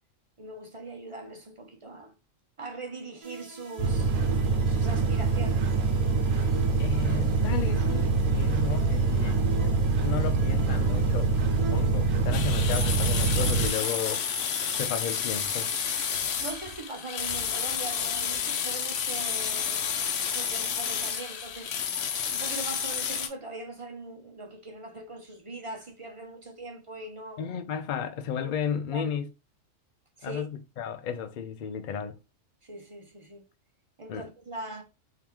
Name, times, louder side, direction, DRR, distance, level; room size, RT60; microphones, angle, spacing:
voice 1, 0.4-2.1 2.6-4.2 4.7-5.7 16.4-19.9 20.2-21.7 22.2-27.4 28.4-28.5 28.9-29.2 30.2-30.5 32.6-33.5 34.0-34.8, right 2 dB, 35° right, 0.6 m, -41 dB
sound 1, 3.2-12.7, right 6 dB, 55° right, 1.2 m, -43 dB
sound 2, 3.8-13.7, right 3 dB, 85° right, 1.0 m, -25 dB
voice 2, 6.8-9.4 10.0-14.5 14.8-15.7 27.4-29.3 30.2-32.2 34.1-34.3, left 7 dB, 55° left, 0.5 m, -34 dB
sound 3, 12.3-23.3, left 7 dB, 70° left, 0.9 m, -30 dB
3.5 x 2.8 x 3.0 m
omnidirectional pair, 1.3 m